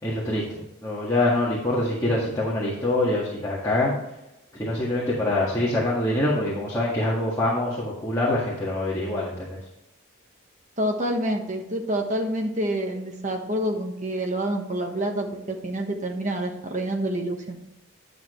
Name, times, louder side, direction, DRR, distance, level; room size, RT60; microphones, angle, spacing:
voice 1, 0.0-4.0 4.5-9.6, left 1 dB, 15° left, -7 dB, 1.7 m, -25 dB
voice 2, 10.8-17.6, right 1 dB, 35° right, 3 dB, 1.3 m, -27 dB
10.5 x 6.7 x 3.2 m, 0.91 s
head